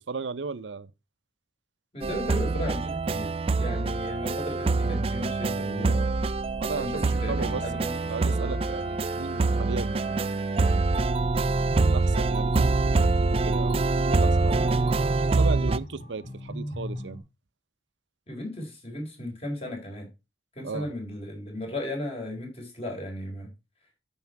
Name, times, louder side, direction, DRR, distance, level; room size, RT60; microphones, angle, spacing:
voice 1, 0.1-0.9 6.6-7.6 8.1-10.3 11.7-14.8 15.2-17.2 20.6-20.9, right 4 dB, 85° right, 0.6 m, -36 dB
voice 2, 1.9-3.3 3.6-6.1 6.8-8.6 18.3-20.1 20.6-23.5, left 1 dB, 35° left, 4.3 m, -35 dB
sound 1, 2.0-15.8, right 3 dB, 30° right, 0.4 m, -25 dB
Bowed string instrument, 7.0-11.4, left 1 dB, 10° right, 1.5 m, -49 dB
sound 2, 11.4-17.2, equal, 50° left, 2.4 m, -39 dB
9.4 x 6.3 x 4.5 m
head